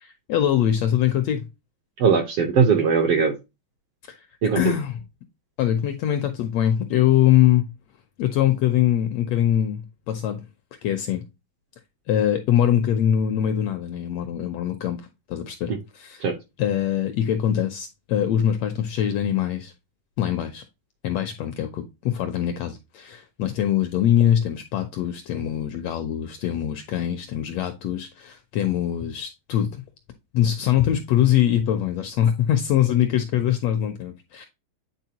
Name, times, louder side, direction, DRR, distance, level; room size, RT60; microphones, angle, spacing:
voice 1, 0.0-1.5 4.1-4.2 4.5-5.0 5.6-7.7 8.2-10.4 10.8-11.2 12.1-15.0 15.3-16.3 16.6-19.7 20.2-20.6 21.0-29.8 30.3-34.5, left 11 dB, 75° left, 1.5 m, -23 dB
voice 2, 2.0-3.3 4.4-4.7 15.7-15.8 16.2-16.3, right 6 dB, 70° right, 1.5 m, -20 dB
9.2 x 4.2 x 2.8 m
omnidirectional pair, 3.6 m